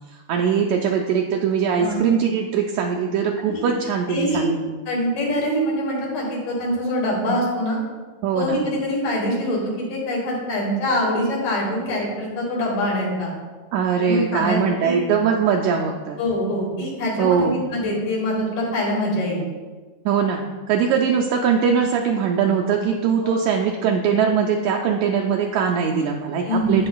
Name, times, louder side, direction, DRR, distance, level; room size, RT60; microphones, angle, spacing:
voice 1, 0.0-4.8 8.2-8.6 13.7-16.2 17.2-17.6 20.0-26.9, right 6 dB, 85° right, 1 dB, 1.6 m, -21 dB
voice 2, 4.1-4.5 4.9-7.8 8.3-13.3 14.0-15.0 16.2-19.4 23.2-23.3 26.5-26.9, equal, 80° left, -4 dB, 3.5 m, -24 dB
8.4 x 7.5 x 2.3 m, 1.4 s
omnidirectional pair, 3.7 m